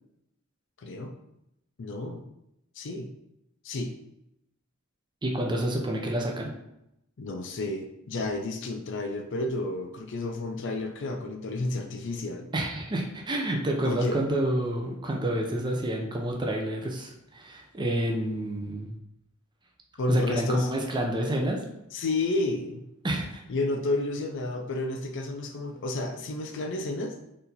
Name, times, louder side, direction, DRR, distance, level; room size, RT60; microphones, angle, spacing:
voice 1, 0.8-1.1 1.8-2.2 2.8-3.1 3.6-3.9 7.2-12.5 13.8-14.2 20.0-20.7 21.9-22.9 23.5-27.2, left 2 dB, 60° left, 5 dB, 0.5 m, -31 dB
voice 2, 5.2-6.5 12.5-18.9 20.1-21.6 23.0-23.4, right 1 dB, 20° right, 0 dB, 0.5 m, -29 dB
4.3 x 2.6 x 4.0 m, 0.84 s
head